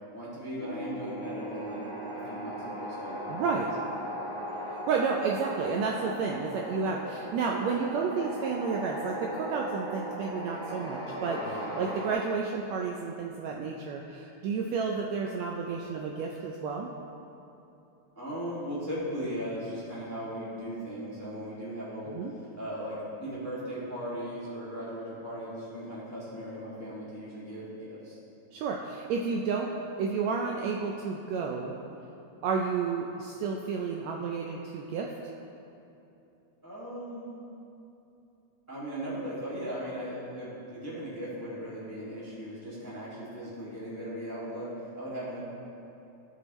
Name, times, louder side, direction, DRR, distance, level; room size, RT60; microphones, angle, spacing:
voice 1, 0.1-1.8 2.1-3.7 4.0-4.5 11.3-11.7 18.1-28.2 31.9-32.0 36.6-37.3 38.7-45.4, equal, 10° left, -9 dB, 1.2 m, -38 dB
sound 1, 0.6-12.1, equal, 45° right, 0.6 m, -38 dB
voice 2, 3.3-3.7 4.7-16.9 22.1-22.3 28.5-29.7 30.0-31.8 32.4-35.1, right 5 dB, 80° right, 0 dB, 1.6 m, -31 dB
13.5 x 6.4 x 3.1 m, 2.8 s
omnidirectional pair, 3.5 m